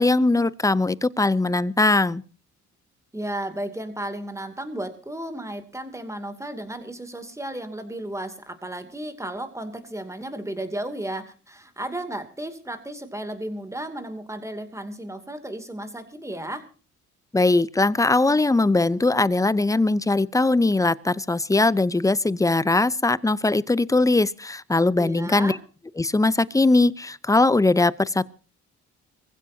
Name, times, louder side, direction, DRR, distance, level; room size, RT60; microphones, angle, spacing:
voice 1, 0.0-2.2 17.3-25.6 26.0-28.2, left 2 dB, 10° left, 0.6 m, -20 dB
voice 2, 3.1-16.7 25.0-25.6, right 1 dB, 10° right, 2.6 m, -34 dB
24.5 x 15.5 x 2.8 m
cardioid pair, 90°, 30 cm